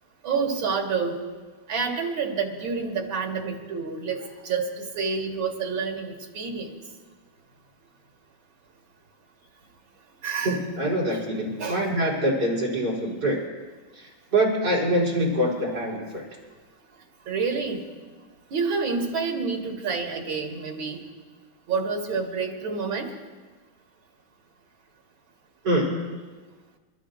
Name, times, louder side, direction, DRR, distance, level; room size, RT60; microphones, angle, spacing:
voice 1, 0.2-1.2 1.7-6.8 10.2-10.6 11.6-11.9 17.3-17.8 18.5-21.0 21.7-23.1, right 5 dB, 85° right, 2 dB, 2.5 m, -28 dB
voice 2, 10.4-13.4 13.9-16.2 25.6-26.1, right 1 dB, 60° right, -5 dB, 4.5 m, -25 dB
29.0 x 13.0 x 2.6 m, 1.3 s
omnidirectional pair, 2.1 m